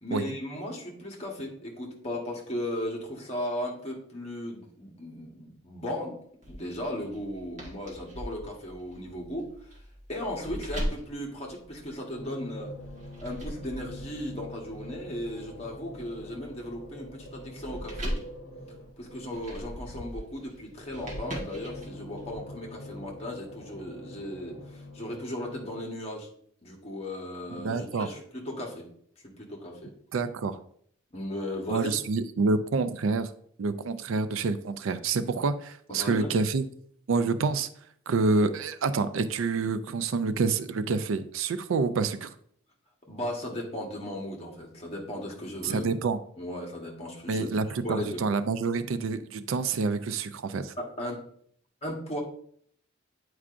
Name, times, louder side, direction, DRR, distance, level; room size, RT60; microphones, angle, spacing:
voice 1, 0.0-6.2 6.4-9.7 10.1-12.7 13.2-18.2 19.0-26.3 26.6-28.9 29.2-29.9 31.1-32.0 35.9-36.3 43.1-45.9 46.4-47.5 47.8-48.2 50.8-51.2 51.8-52.2, left 1 dB, 30° left, -2 dB, 1.2 m, -36 dB
sound 1, 6.4-12.2 12.8-22.3, equal, 35° right, 1.4 m, -40 dB
sound 2, 12.1-19.7 20.6-25.8, left 1 dB, 60° left, 0.9 m, -45 dB
voice 2, 27.6-28.1 30.1-30.6 31.7-33.3 33.6-36.6 37.1-37.7 38.1-42.3 45.6-46.2 47.3-50.7, right 4 dB, 75° right, 12 dB, 0.4 m, -27 dB
8.5 x 4.7 x 2.5 m, 0.63 s
head